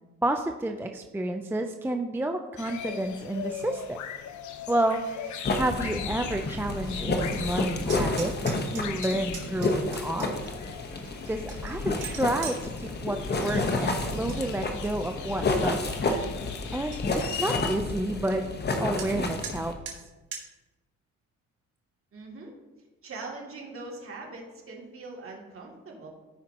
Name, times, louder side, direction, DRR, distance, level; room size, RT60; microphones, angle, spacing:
voice 1, 0.2-4.0 4.7-8.3 8.7-10.3 11.3-16.0 16.7-18.5 18.8-20.0, right 1 dB, 5° right, 5 dB, 0.5 m, -30 dB
sound 1, 2.6-17.8, left 9 dB, 70° left, 0.7 m, -40 dB
sound 2, 5.4-19.7, left 2 dB, 35° left, 1.1 m, -30 dB
sound 3, 7.8-10.5 11.0-12.6 14.0-14.4 14.8-15.3 15.8-15.9 16.2-16.3 16.6-16.7 16.9-17.4 19.0-19.1 19.4-19.5 19.9-20.0 20.3-20.4, right 7 dB, 85° right, 1.6 m, -41 dB
voice 2, 22.1-22.5 23.0-26.1, right 3 dB, 45° right, -2 dB, 2.6 m, -41 dB
14.0 x 5.1 x 2.9 m, 1.2 s
cardioid pair, 90°, 30 cm